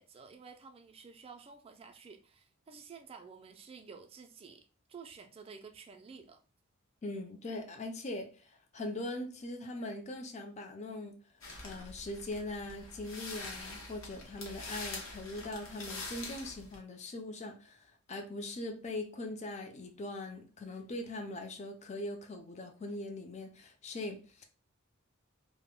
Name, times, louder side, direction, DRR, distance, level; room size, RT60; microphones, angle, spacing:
voice 1, 0.0-6.4, right 5 dB, 25° right, 0.3 m, -52 dB
voice 2, 7.0-11.1 11.6-24.5, left 2 dB, 35° left, 0.4 m, -41 dB
sound 1, 11.4-16.8, left 3 dB, 75° left, 0.8 m, -45 dB
2.1 x 2.1 x 3.6 m
head